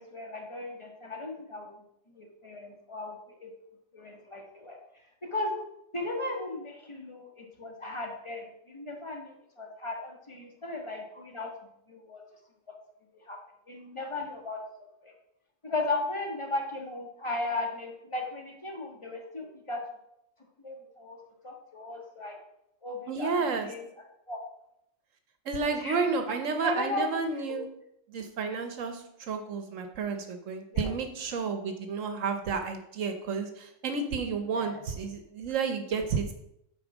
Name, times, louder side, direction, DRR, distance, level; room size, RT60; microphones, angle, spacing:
voice 1, 0.0-1.7 2.1-3.5 3.9-4.8 5.2-5.6 5.9-11.5 11.9-12.2 13.1-13.4 13.7-14.6 15.0-15.1 15.6-19.8 20.6-21.2 21.4-22.4 22.8-23.8 24.3-24.4 25.6-26.1 26.5-27.1 27.5-27.6 30.7-30.9 34.5-34.8, left 2 dB, 25° left, 1 dB, 1.4 m, -36 dB
voice 2, 23.1-23.7 25.5-27.7 28.1-36.3, right 5 dB, 75° right, 6 dB, 1.1 m, -31 dB
8.7 x 4.3 x 6.1 m, 0.79 s
omnidirectional pair, 1.4 m